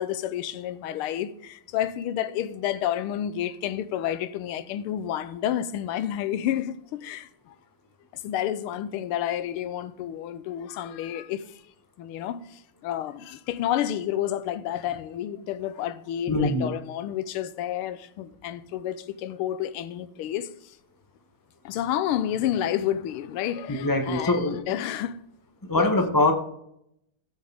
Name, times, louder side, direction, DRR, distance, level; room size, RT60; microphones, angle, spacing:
voice 1, 0.0-7.5 8.1-11.6 12.0-20.8 21.6-25.2 25.7-25.9, left 11 dB, 85° left, 1.6 m, -30 dB
voice 2, 16.3-16.7 23.7-24.6 25.6-26.3, left 2 dB, 15° left, 0.6 m, -23 dB
16.0 x 6.5 x 3.5 m
omnidirectional pair, 2.4 m